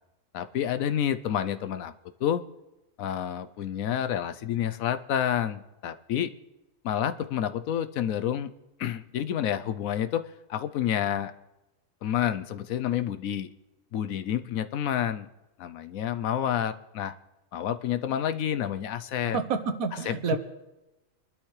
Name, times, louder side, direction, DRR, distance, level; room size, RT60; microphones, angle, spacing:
voice 1, 0.3-1.9 2.2-2.4 3.0-6.3 6.8-8.5 8.8-11.3 12.0-13.5 13.9-15.3 15.6-17.1 17.5-19.4 20.1-20.4, left 10 dB, 80° left, 10 dB, 1.1 m, -29 dB
voice 2, 19.2-20.4, right 5 dB, 85° right, 9 dB, 1.5 m, -29 dB
24.0 x 12.0 x 3.2 m, 0.97 s
omnidirectional pair, 1.5 m